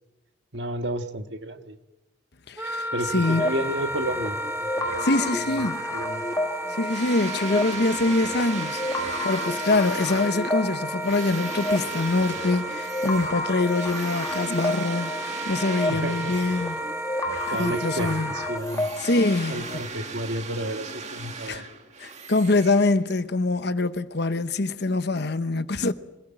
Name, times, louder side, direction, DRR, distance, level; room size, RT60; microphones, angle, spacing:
voice 1, 0.5-1.8 2.9-5.7 5.9-6.2 15.9-16.3 17.5-18.9 19.4-21.6, right 1 dB, 70° right, 1.7 m, -32 dB
voice 2, 2.5-3.5 5.0-5.9 6.7-16.8 17.6-18.3 19.0-19.7 21.5-21.7 22.0-25.9, left 2 dB, 65° left, 1.0 m, -24 dB
Wind instrument woodwind instrument, 2.6-18.6, right 1 dB, 10° right, 1.3 m, -33 dB
sound 1, 3.2-19.8, left 1 dB, 20° left, 1.3 m, -32 dB
sound 2, 6.9-16.9 17.3-23.3, right 4 dB, 40° right, 2.3 m, -38 dB
26.0 x 17.0 x 8.9 m
head